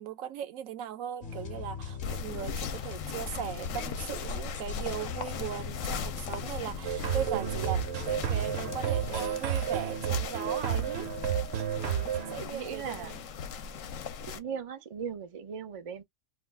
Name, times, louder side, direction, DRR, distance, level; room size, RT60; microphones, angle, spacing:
voice 1, 0.0-11.1 11.8-13.2, right 10 dB, 80° right, 1.0 m, -38 dB
sound 1, 1.2-8.9, left 6 dB, 45° left, 0.8 m, -41 dB
sound 2, 2.0-14.4, left 6 dB, 75° left, 0.9 m, -39 dB
sound 3, 6.8-12.4, right 9 dB, 60° right, 0.8 m, -31 dB
voice 2, 12.4-13.2 14.2-16.0, right 7 dB, 45° right, 0.4 m, -38 dB
2.5 x 2.3 x 3.3 m
omnidirectional pair, 1.4 m